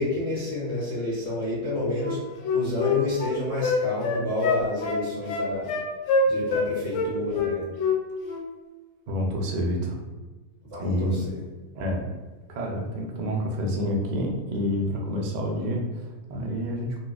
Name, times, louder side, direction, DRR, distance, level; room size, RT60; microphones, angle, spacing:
voice 1, 0.0-5.7 6.3-7.7 10.6-11.4, left 1 dB, 55° right, -7 dB, 1.7 m, -29 dB
Wind instrument woodwind instrument, 2.0-6.7 6.9-8.0 8.2-8.4, left 4 dB, 70° left, 0.9 m, -25 dB
voice 2, 9.1-10.0 10.8-11.2 11.7-12.0 12.5-17.0, equal, 85° right, -1 dB, 0.4 m, -28 dB
4.0 x 2.3 x 2.3 m, 1.3 s
omnidirectional pair, 1.5 m